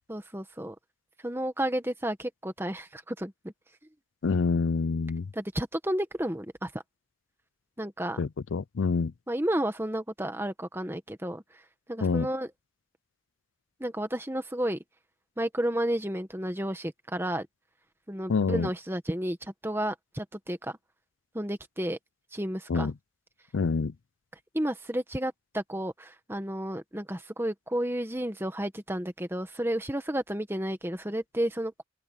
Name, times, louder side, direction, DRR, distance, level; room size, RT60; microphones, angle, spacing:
voice 1, 0.1-0.7 1.2-3.5 5.3-6.7 7.8-8.2 9.3-11.4 11.9-12.5 13.8-14.8 15.4-17.5 18.1-20.8 21.3-22.0 22.3-22.9 24.5-31.8, right 1 dB, 10° right, 1.5 m, -32 dB
voice 2, 4.2-5.3 8.2-9.1 12.0-12.3 18.3-18.7 22.7-22.9 23.5-23.9, left 4 dB, 75° left, 0.5 m, -27 dB
open air
head